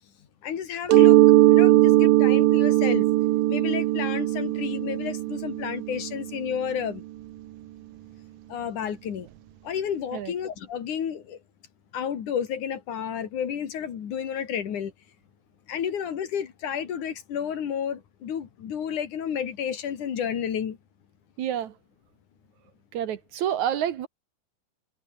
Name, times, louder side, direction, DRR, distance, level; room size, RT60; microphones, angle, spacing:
voice 1, 0.4-1.2 1.5-3.1 3.5-7.0 8.5-9.3 9.7-11.4 11.9-14.9 15.7-20.8, left 8 dB, 65° left, 3.6 m, -31 dB
Mallet percussion, 0.9-6.4, right 16 dB, 85° right, 2.6 m, -19 dB
voice 2, 21.4-21.8 22.9-24.1, right 10 dB, 65° right, 2.5 m, -28 dB
omnidirectional pair, 3.8 m